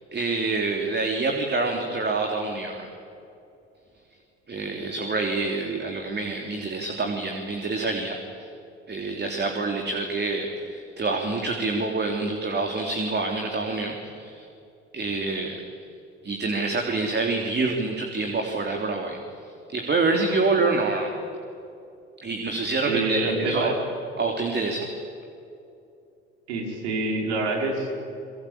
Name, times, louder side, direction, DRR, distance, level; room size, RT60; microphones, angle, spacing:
voice 1, 0.1-2.9 4.5-8.5 8.9-14.5 14.9-15.6 16.2-19.2 19.7-21.1 22.2-23.7 24.2-24.9, right 3 dB, 30° right, 2 dB, 3.4 m, -27 dB
voice 2, 22.9-23.7 26.5-27.9, right 2 dB, 80° right, 2 dB, 5.1 m, -26 dB
25.0 x 22.5 x 8.8 m, 2.6 s
hypercardioid pair, 65°, 33 cm